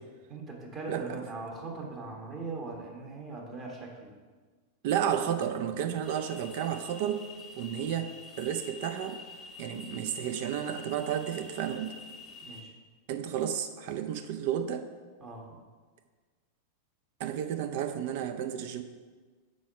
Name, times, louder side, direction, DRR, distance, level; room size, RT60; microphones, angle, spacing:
voice 1, 0.3-4.1 12.4-12.7 15.2-15.6, right 3 dB, 30° right, -1 dB, 1.4 m, -40 dB
voice 2, 0.9-1.2 4.8-7.2 7.6-9.2 9.6-11.9 13.1-14.9 17.2-18.8, right 9 dB, 50° right, 8 dB, 0.6 m, -32 dB
sound 1, 6.0-12.6, left 3 dB, 25° left, 0.7 m, -47 dB
6.2 x 4.6 x 5.8 m, 1.4 s
figure-of-eight pair, 90°, 0 cm